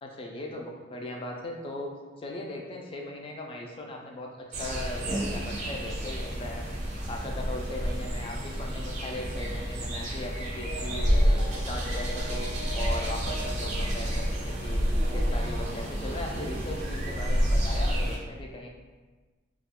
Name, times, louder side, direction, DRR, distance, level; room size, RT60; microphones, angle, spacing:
voice 1, 0.0-1.9 2.2-6.6 7.1-12.5 12.7-14.8 15.1-18.7, left 1 dB, 25° left, 1 dB, 0.3 m, -38 dB
sound 1, 4.5-18.2, equal, 35° right, 0.5 m, -29 dB
sound 2, 10.7-16.5, left 1 dB, 90° left, 0.5 m, -44 dB
2.3 x 2.1 x 3.5 m, 1.3 s
head